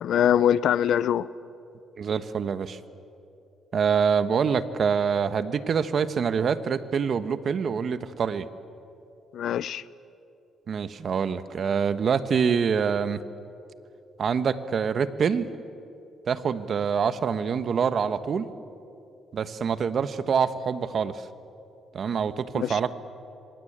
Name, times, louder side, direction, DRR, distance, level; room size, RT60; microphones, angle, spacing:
voice 1, 0.0-1.3 9.3-9.8 22.6-22.8, left 10 dB, 70° left, 19 dB, 0.7 m, -23 dB
voice 2, 2.0-2.8 3.7-8.5 10.7-13.2 14.2-15.5 16.3-18.5 19.3-21.3 21.9-22.9, right 6 dB, 55° right, 13 dB, 1.3 m, -25 dB
26.5 x 24.5 x 8.8 m, 2.8 s
cardioid pair, 90°, 0 cm